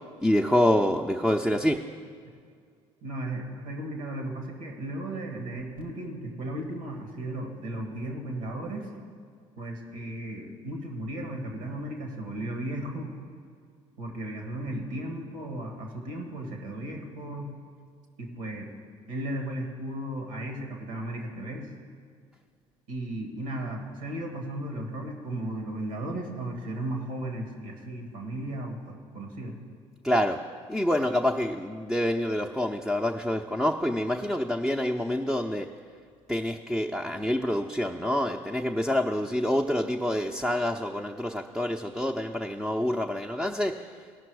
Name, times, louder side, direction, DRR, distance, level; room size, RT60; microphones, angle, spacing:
voice 1, 0.2-1.8 30.0-30.4 30.7-35.7 36.3-43.9, left 1 dB, ahead, 1 dB, 0.6 m, -27 dB
voice 2, 3.0-8.9 9.6-13.1 14.0-17.5 18.2-18.7 19.1-21.7 22.9-29.7, right 1 dB, 80° right, 2 dB, 1.7 m, -35 dB
16.5 x 6.0 x 4.7 m, 2.1 s
hypercardioid pair, 60°, 17 cm